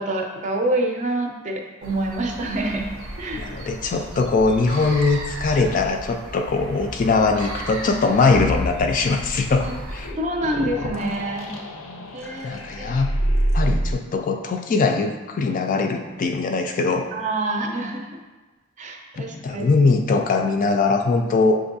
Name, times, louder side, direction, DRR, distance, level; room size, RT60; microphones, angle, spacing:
voice 1, 0.0-2.9 3.2-3.5 5.5-5.6 9.6-9.7 10.2-11.5 12.1-13.0 17.1-18.2 18.8-19.8, right 1 dB, 35° right, 2 dB, 0.5 m, -27 dB
sound 1, 1.8-10.1, right 1 dB, 85° right, 0.7 m, -35 dB
voice 2, 3.3-10.1 12.4-13.1 13.5-17.1 19.2-21.6, left 3 dB, 40° left, 5 dB, 0.3 m, -21 dB
sound 2, 8.3-13.9, equal, 90° left, 0.6 m, -27 dB
7.1 x 2.6 x 2.6 m, 1.2 s
head